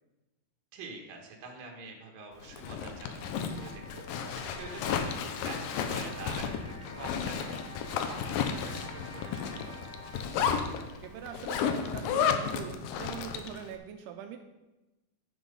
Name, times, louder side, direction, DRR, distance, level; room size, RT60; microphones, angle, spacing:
voice 1, 0.7-7.6 8.1-10.0, right 3 dB, 65° right, 1 dB, 3.1 m, -46 dB
Zipper (clothing), 2.4-13.6, left 7 dB, 75° left, 2.3 m, -33 dB
sound 1, 2.4-13.4, equal, 50° left, 3.7 m, -50 dB
voice 2, 11.0-14.4, right 8 dB, 85° right, 5 dB, 2.7 m, -43 dB
11.5 x 6.1 x 5.4 m, 1.0 s
omnidirectional pair, 4.5 m